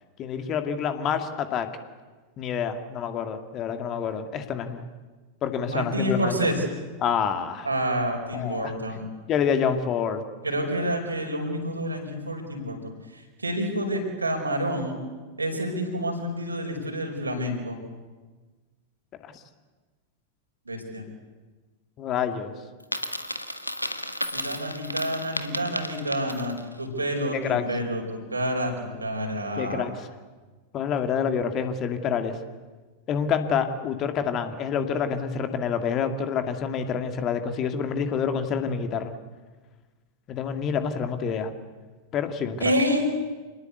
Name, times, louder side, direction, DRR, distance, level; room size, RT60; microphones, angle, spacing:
voice 1, 0.2-1.7 2.4-4.8 5.4-6.5 7.0-7.7 8.3-10.2 22.0-22.5 27.3-27.6 29.6-30.1 30.7-32.3 33.1-39.1 40.3-41.5 42.1-42.6, left 7 dB, 35° left, 8 dB, 2.2 m, -27 dB
voice 2, 5.6-6.6 7.6-9.1 10.4-12.9 13.4-15.0 15.4-17.8 20.7-21.0 24.3-29.9 42.6-43.1, equal, 80° right, 2 dB, 5.2 m, -28 dB
Coin (dropping), 22.8-26.7, left 1 dB, 90° left, 1.3 m, -33 dB
27.5 x 19.5 x 8.2 m, 1.3 s
figure-of-eight pair, 90°, 0 cm